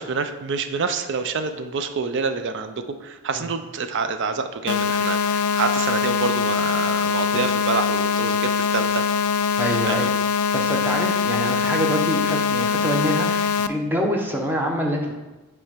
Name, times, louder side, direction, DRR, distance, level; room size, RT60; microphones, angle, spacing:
voice 1, 0.0-2.7 3.0-9.0 9.9-10.1, right 5 dB, 55° right, 9 dB, 0.4 m, -27 dB
sound 1, 4.7-13.7, left 6 dB, 90° left, 0.3 m, -22 dB
voice 2, 9.6-10.1 10.5-15.1, equal, 10° right, 1 dB, 0.8 m, -25 dB
7.0 x 3.3 x 5.1 m, 1.1 s
head